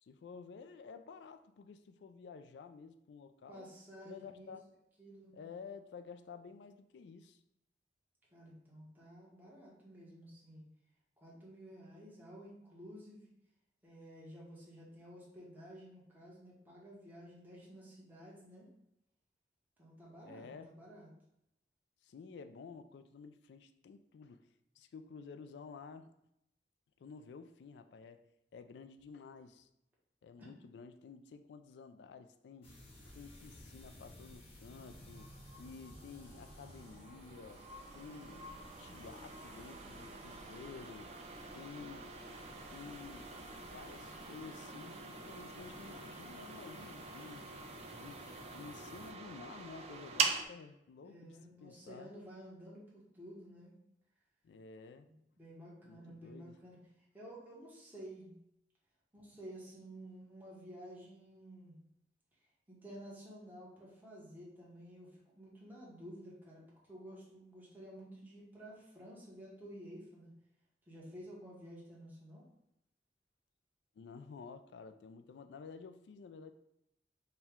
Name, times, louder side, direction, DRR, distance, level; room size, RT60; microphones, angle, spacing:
voice 1, 0.0-3.7 4.0-4.7 5.3-7.4 20.2-20.7 22.0-24.5 24.8-26.1 27.0-29.7 30.2-32.7 33.0-35.3 35.6-37.6 37.9-41.2 41.5-42.1 42.7-43.3 43.7-47.5 48.0-48.2 48.5-52.1 54.4-55.1 55.8-56.6 74.0-76.5, left 5 dB, 75° left, 9 dB, 0.3 m, -52 dB
voice 2, 3.5-4.5 5.0-5.3 8.3-10.6 11.2-13.3 13.8-18.7 19.8-21.1 30.4-30.5 51.0-53.7 55.1-56.8 57.1-58.3 59.1-61.8 62.7-70.3 70.9-72.5, equal, 10° right, -6 dB, 1.0 m, -52 dB
sound 1, 32.6-49.1, left 1 dB, 35° left, 0.9 m, -56 dB
sound 2, 34.7-50.5, right 5 dB, 35° right, 0.4 m, -44 dB
4.4 x 2.2 x 3.5 m, 0.80 s
head